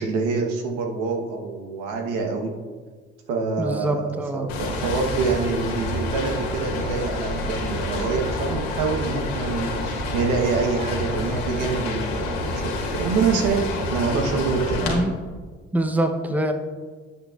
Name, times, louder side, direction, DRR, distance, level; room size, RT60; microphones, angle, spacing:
voice 1, 0.0-2.5 3.3-14.8, right 4 dB, 80° right, 3 dB, 1.1 m, -26 dB
voice 2, 3.6-4.5 14.8-15.1 15.7-16.5, right 1 dB, 5° right, 5 dB, 0.7 m, -24 dB
sound 1, 4.5-14.9, left 2 dB, 85° left, 1.4 m, -28 dB
9.5 x 8.5 x 2.4 m, 1.5 s
hypercardioid pair, 60°, 30 cm